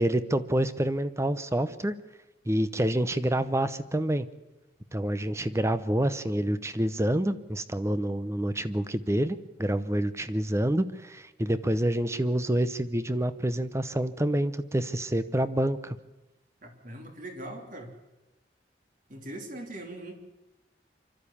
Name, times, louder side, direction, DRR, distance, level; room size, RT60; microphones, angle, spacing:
voice 1, 0.0-1.9 2.5-4.3 4.9-16.0, right 1 dB, 15° right, 13 dB, 0.8 m, -27 dB
voice 2, 16.6-17.9 19.1-20.2, right 1 dB, 50° right, 4 dB, 3.1 m, -41 dB
26.0 x 12.5 x 8.6 m, 1.0 s
head